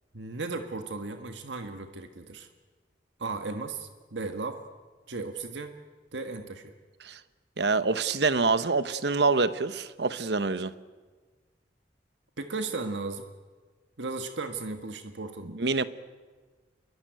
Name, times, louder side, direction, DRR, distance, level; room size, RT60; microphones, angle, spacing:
voice 1, 0.1-2.5 3.2-4.6 5.1-5.7 6.1-6.7 12.4-13.3 14.0-15.5, right 3 dB, 90° right, 6 dB, 1.6 m, -35 dB
voice 2, 7.6-10.7 15.4-15.8, right 4 dB, 65° right, 13 dB, 1.1 m, -26 dB
27.0 x 23.0 x 9.3 m, 1.4 s
head